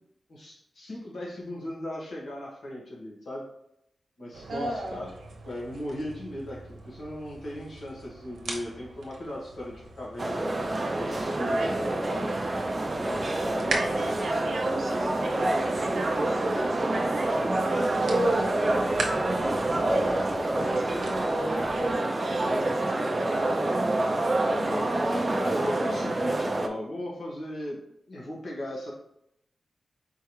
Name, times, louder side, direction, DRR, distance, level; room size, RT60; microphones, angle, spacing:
voice 1, 0.3-3.4 4.2-5.1 5.4-10.5 11.0-12.4 13.4-14.0 20.6-20.7 22.4-22.5 24.4-25.1 25.4-27.8 28.1-28.9, left 1 dB, 65° left, -4 dB, 1.7 m, -37 dB
sound 1, 4.3-21.9, right 3 dB, 85° right, 0.8 m, -41 dB
voice 2, 4.5-5.0 11.4-12.1 13.3-24.0, right 1 dB, 60° right, 0 dB, 1.1 m, -35 dB
sound 2, 10.2-26.7, right 2 dB, 30° right, 0.5 m, -27 dB
4.6 x 3.4 x 3.1 m, 0.77 s
wide cardioid pair, 105°, 0 cm